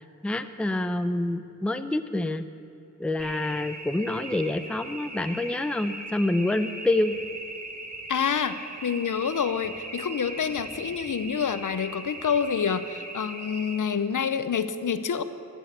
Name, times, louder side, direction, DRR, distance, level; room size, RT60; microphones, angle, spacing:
voice 1, 0.2-2.5 3.0-7.1, left 2 dB, 5° left, 10 dB, 0.5 m, -27 dB
sound 1, 3.2-13.8, right 2 dB, 55° right, 1.6 m, -39 dB
voice 2, 8.1-8.6 8.8-15.2, left 7 dB, 65° left, 12 dB, 0.7 m, -27 dB
14.5 x 6.4 x 9.2 m, 2.9 s
wide cardioid pair, 85°, 34 cm